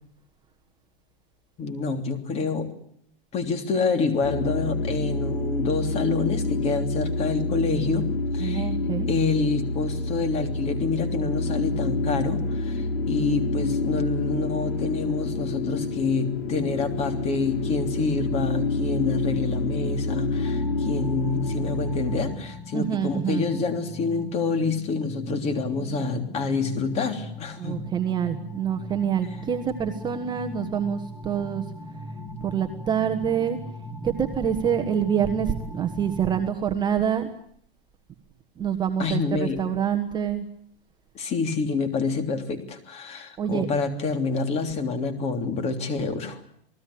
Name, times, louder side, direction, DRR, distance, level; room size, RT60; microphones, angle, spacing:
voice 1, 1.6-2.7 3.3-8.7 9.1-27.8 39.0-39.6 41.1-46.4, left 4 dB, 20° left, 7 dB, 3.2 m, -27 dB
sound 1, 4.2-22.3, left 3 dB, 70° left, 6.7 m, -28 dB
voice 2, 8.4-9.1 22.7-23.5 27.6-31.6 32.4-33.6 34.0-37.3 38.6-40.4 43.4-43.7, right 8 dB, 15° right, 5 dB, 1.3 m, -26 dB
sound 2, 20.4-36.5, right 1 dB, 5° left, 2.0 m, -39 dB
28.5 x 19.5 x 8.6 m, 0.66 s
supercardioid pair, 160°, 30 cm